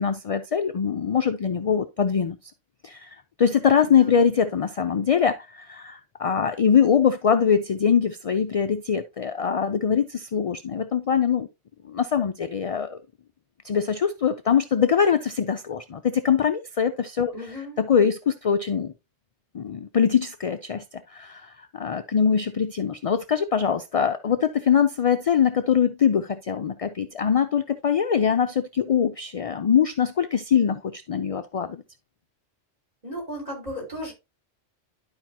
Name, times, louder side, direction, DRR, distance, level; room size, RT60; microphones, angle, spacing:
voice 1, 0.0-2.4 2.8-11.5 11.9-13.0 13.6-17.3 17.8-18.9 19.5-20.8 21.1-31.8, left 7 dB, 55° left, 0.3 m, -23 dB
voice 2, 4.0-4.3 17.3-17.8 33.0-34.1, equal, 35° right, 4.4 m, -35 dB
11.5 x 4.8 x 2.8 m
omnidirectional pair, 1.2 m